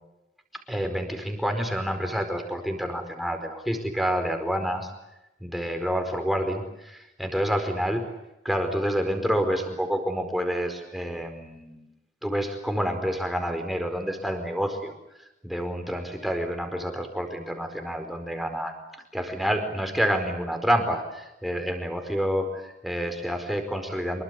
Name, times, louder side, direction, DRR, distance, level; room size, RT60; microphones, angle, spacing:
voice 1, 0.7-4.9 5.4-8.0 8.4-11.8 12.2-14.9 15.4-18.7 19.1-24.2, equal, ahead, 5 dB, 4.7 m, -28 dB
26.0 x 23.5 x 8.3 m, 0.92 s
head